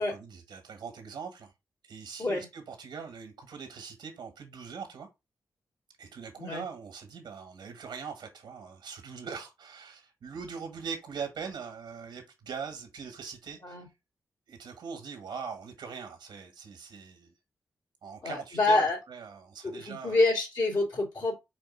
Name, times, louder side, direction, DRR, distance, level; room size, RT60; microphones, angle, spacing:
voice 1, 0.0-1.5 1.9-5.1 6.0-13.8 14.5-17.3 18.0-20.2, right 6 dB, 80° right, 1.4 m, -41 dB
voice 2, 18.2-19.0 19.6-21.4, left 2 dB, 65° left, 2.8 m, -27 dB
5.0 x 2.6 x 3.7 m
supercardioid pair, 45°, 8 cm